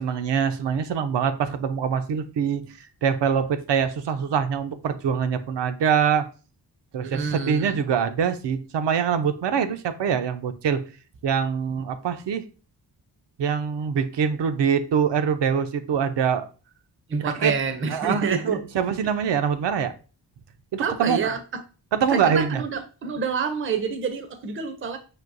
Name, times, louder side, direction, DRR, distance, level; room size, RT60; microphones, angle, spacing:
voice 1, 0.0-6.2 6.9-10.8 11.2-12.4 13.4-16.5 17.1-17.5 17.9-19.9 20.7-21.2 21.9-22.6, right 7 dB, 80° right, 0.5 m, -24 dB
voice 2, 7.0-7.8 17.1-18.6 20.8-21.6 22.1-25.0, right 5 dB, 30° right, 0.4 m, -28 dB
6.0 x 2.7 x 2.5 m
wide cardioid pair, 175°, 42 cm